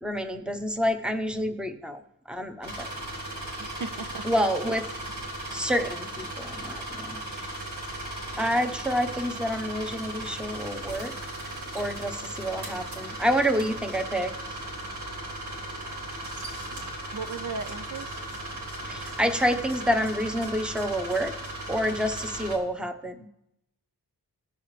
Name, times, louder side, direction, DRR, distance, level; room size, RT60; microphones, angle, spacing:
voice 1, 0.0-2.0 2.3-2.9 4.2-4.9 5.5-7.5 8.4-11.1 11.7-14.3 18.9-21.3 21.7-23.3, equal, ahead, 5 dB, 0.9 m, -28 dB
sound 1, 2.6-22.6, right 1 dB, 90° right, 3.2 m, -37 dB
voice 2, 3.5-4.2 17.1-18.2, right 4 dB, 50° right, 8 dB, 0.5 m, -36 dB
20.0 x 7.0 x 3.3 m, 0.87 s
wide cardioid pair, 85°, 40 cm